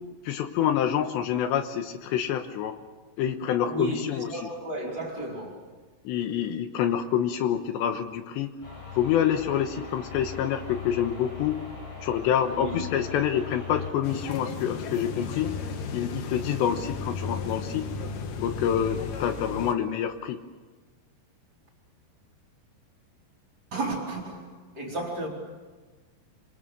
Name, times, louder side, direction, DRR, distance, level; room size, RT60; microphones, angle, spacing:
voice 1, 0.2-2.8 3.2-4.3 6.0-8.5 9.0-11.6 12.0-15.6 15.9-17.9 18.4-20.4, left 9 dB, 80° left, 8 dB, 3.2 m, -27 dB
voice 2, 3.6-5.7 12.5-12.8 23.7-25.3, right 2 dB, 25° right, -1 dB, 4.5 m, -33 dB
sound 1, 8.6-13.9, left 6 dB, 40° left, 6.7 m, -40 dB
sound 2, 14.0-19.7, left 4 dB, 60° left, 2.6 m, -34 dB
26.5 x 25.5 x 6.9 m, 1.3 s
omnidirectional pair, 5.2 m